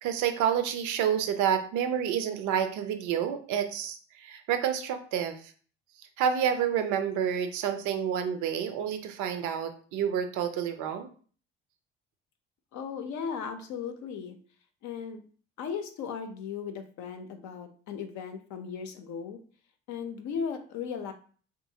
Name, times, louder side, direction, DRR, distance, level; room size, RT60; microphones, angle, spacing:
voice 1, 0.0-5.5 6.0-11.1, right 8 dB, 65° right, 8 dB, 0.5 m, -29 dB
voice 2, 12.7-14.4 14.8-15.2 15.6-19.4 19.9-21.1, left 6 dB, 60° left, 6 dB, 0.6 m, -36 dB
2.7 x 2.5 x 2.7 m, 0.43 s
hypercardioid pair, 50°, 33 cm